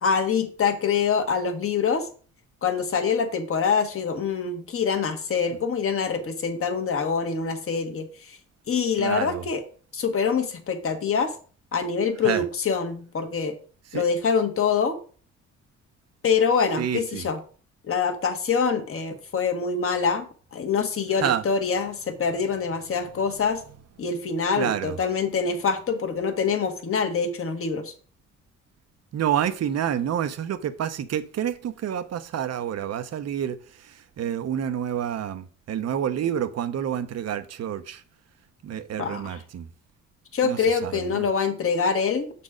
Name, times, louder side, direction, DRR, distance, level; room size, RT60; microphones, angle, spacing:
voice 1, 0.0-2.1 2.6-8.4 8.7-9.6 9.9-11.3 11.7-13.5 13.9-15.0 16.2-17.4 17.9-23.6 24.0-27.9 39.0-39.4 40.3-42.3, left 5 dB, 45° left, 1.4 m, -25 dB
voice 2, 9.0-9.4 12.2-12.4 13.9-14.0 16.8-17.3 21.2-21.5 24.6-25.0 29.1-38.0 38.6-39.7 40.4-41.2, right 9 dB, 55° right, 0.8 m, -28 dB
6.9 x 4.2 x 5.0 m
cardioid pair, 90°, 30 cm